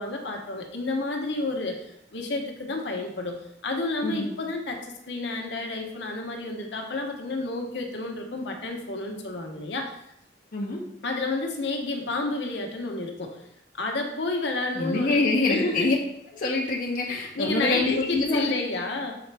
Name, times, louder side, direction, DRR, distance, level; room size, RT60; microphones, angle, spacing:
voice 1, 0.0-3.4 3.6-10.0 11.0-13.4 13.7-15.2 15.5-15.9 17.3-19.2, left 2 dB, 70° left, 2 dB, 1.0 m, -30 dB
voice 2, 14.8-15.9 16.3-18.5, left 2 dB, 50° left, -2 dB, 0.8 m, -25 dB
6.8 x 4.1 x 3.4 m, 0.78 s
head